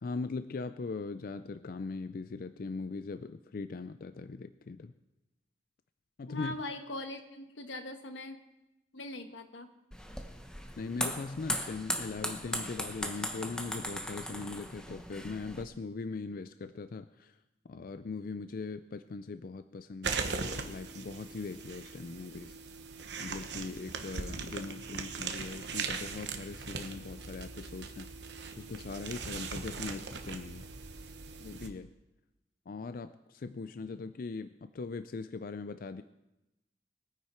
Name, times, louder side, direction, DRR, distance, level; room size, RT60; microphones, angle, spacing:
voice 1, 0.0-4.9 6.2-6.6 10.8-17.4 17.6-22.6 23.2-28.1 28.6-30.6 31.4-31.9 32.7-36.0, left 4 dB, 50° left, 11 dB, 0.4 m, -40 dB
voice 2, 6.3-8.4 8.9-9.7, left 2 dB, 90° left, 7 dB, 1.4 m, -41 dB
sound 1, 9.9-15.6, equal, 5° left, 0.9 m, -38 dB
sound 2, 20.0-31.7, right 5 dB, 65° right, 1.1 m, -40 dB
21.0 x 9.6 x 4.4 m, 0.97 s
head